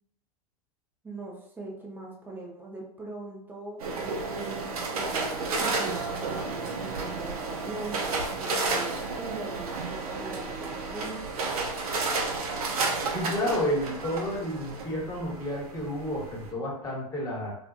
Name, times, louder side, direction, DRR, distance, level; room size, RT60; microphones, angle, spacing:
voice 1, 1.0-5.1 5.6-11.3, right 2 dB, 10° right, -2 dB, 0.6 m, -41 dB
sound 1, 3.8-16.5, right 3 dB, 70° right, 0.6 m, -32 dB
voice 2, 13.1-17.5, equal, 20° left, -4 dB, 1.0 m, -31 dB
2.5 x 2.5 x 2.3 m, 0.72 s
figure-of-eight pair, 95°, 20 cm